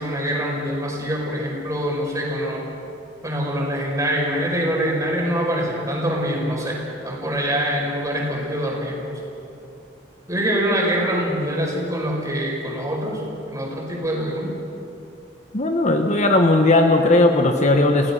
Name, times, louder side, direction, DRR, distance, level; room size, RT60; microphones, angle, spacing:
voice 1, 0.0-2.6 3.2-6.8 7.0-9.2 10.3-13.2 13.5-14.5, equal, 20° right, -2 dB, 5.2 m, -24 dB
voice 2, 15.5-18.1, left 2 dB, 40° left, 4 dB, 1.2 m, -17 dB
28.5 x 16.5 x 5.6 m, 2.7 s
head